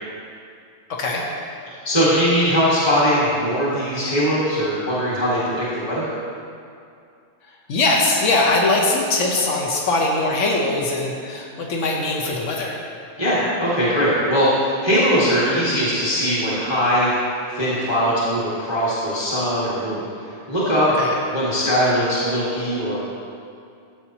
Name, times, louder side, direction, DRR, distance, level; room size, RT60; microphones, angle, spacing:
voice 1, 1.8-6.1 13.2-17.1 17.5-20.1 20.5-20.9 21.3-23.0, equal, 20° left, -8 dB, 1.8 m, -20 dB
voice 2, 7.7-12.8 21.0-21.2, left 2 dB, 75° left, -1 dB, 1.4 m, -21 dB
14.0 x 8.3 x 3.0 m, 2.4 s
omnidirectional pair, 1.3 m